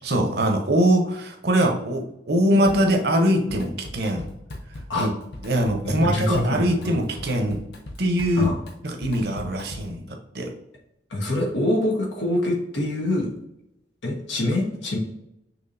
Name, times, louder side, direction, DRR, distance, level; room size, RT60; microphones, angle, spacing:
voice 1, 0.0-4.3 4.9-5.1 5.4-7.6 8.0-8.5 8.8-10.5, equal, 60° right, 3 dB, 0.8 m, -22 dB
Drum kit, 2.7-3.2 3.5-10.0, left 1 dB, 60° left, 0.7 m, -40 dB
voice 2, 5.8-6.9 8.4-8.6 11.1-13.3 14.0-15.0, left 1 dB, 85° left, -1 dB, 1.4 m, -25 dB
5.9 x 3.0 x 2.6 m, 0.84 s
head